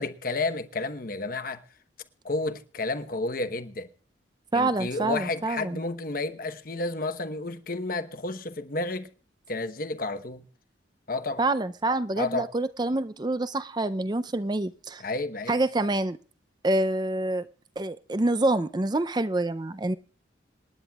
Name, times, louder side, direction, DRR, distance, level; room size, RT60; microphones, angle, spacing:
voice 1, 0.0-1.6 2.2-3.9 4.5-9.1 9.5-10.4 11.1-11.4 12.2-12.5 15.0-15.6, left 3 dB, 50° left, 1.1 m, -31 dB
voice 2, 4.5-5.8 11.4-15.0 15.5-16.2 16.6-17.5 17.8-19.9, right 2 dB, 20° right, 0.5 m, -26 dB
27.0 x 10.0 x 2.3 m
head